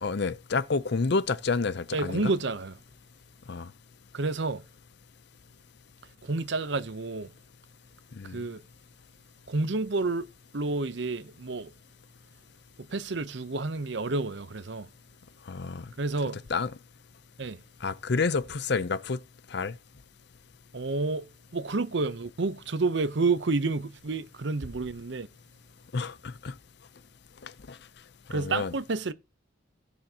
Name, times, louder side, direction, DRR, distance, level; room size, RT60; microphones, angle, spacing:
voice 1, 0.0-2.3 3.5-3.7 8.1-8.4 15.5-15.8 16.5-16.7 17.8-19.2 19.5-19.7 25.9-26.5 27.4-27.8 28.3-28.7, left 4 dB, 60° left, 0.6 m, -29 dB
voice 2, 1.9-2.7 4.1-4.6 6.2-7.3 8.3-8.6 9.5-10.3 10.5-11.7 12.8-14.9 16.0-16.4 17.4-17.6 20.7-25.3 28.3-29.1, right 3 dB, 65° right, 0.7 m, -29 dB
16.0 x 7.1 x 2.9 m
head